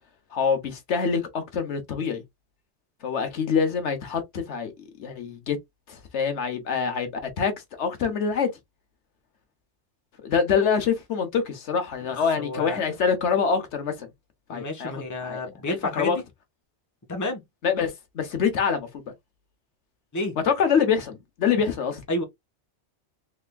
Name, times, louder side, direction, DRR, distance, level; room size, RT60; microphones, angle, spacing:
voice 1, 0.3-2.2 3.0-5.6 5.9-7.1 7.4-8.5 10.2-14.1 14.5-14.9 15.2-15.4 15.7-16.2 17.6-19.1 20.5-22.0, left 6 dB, 75° left, 1.2 m, -25 dB
voice 2, 12.4-12.9 14.5-16.2 17.1-17.4 20.1-20.4 22.1-22.2, left 2 dB, 15° left, 0.8 m, -30 dB
3.5 x 3.3 x 2.2 m
omnidirectional pair, 1.2 m